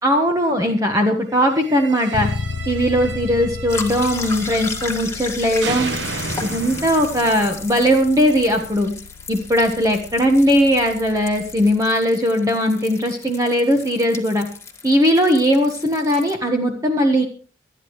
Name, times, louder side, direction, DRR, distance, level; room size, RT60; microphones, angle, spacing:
voice 1, 0.0-2.3 2.7-6.0 6.4-8.9 9.3-14.5 14.8-17.2, equal, 20° right, 3 dB, 1.3 m, -19 dB
sound 1, 1.5-5.3 5.6-8.6, right 4 dB, 70° right, 1.3 m, -33 dB
Bass guitar, 2.1-12.0, left 4 dB, 85° left, 0.6 m, -35 dB
sound 2, 3.7-16.3, left 4 dB, 15° left, 2.0 m, -35 dB
24.5 x 9.9 x 3.2 m, 0.38 s
head